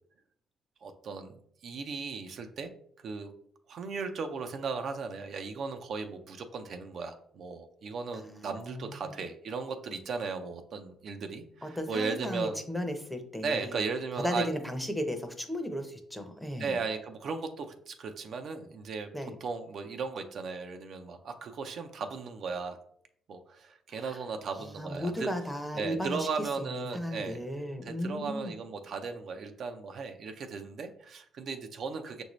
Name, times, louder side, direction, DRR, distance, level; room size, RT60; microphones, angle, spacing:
voice 1, 0.8-1.3 1.6-2.7 3.0-3.3 3.7-12.6 13.4-14.5 16.6-19.1 19.4-22.8 23.3-25.3 25.8-27.4 27.8-32.2, right 4 dB, 60° right, 6 dB, 0.4 m, -36 dB
voice 2, 8.1-9.1 11.6-13.8 14.2-16.8 19.1-19.3 23.9-24.2 24.7-28.5, equal, 5° left, 6 dB, 0.6 m, -35 dB
5.7 x 2.6 x 3.1 m, 0.65 s
cardioid pair, 95°, 0 cm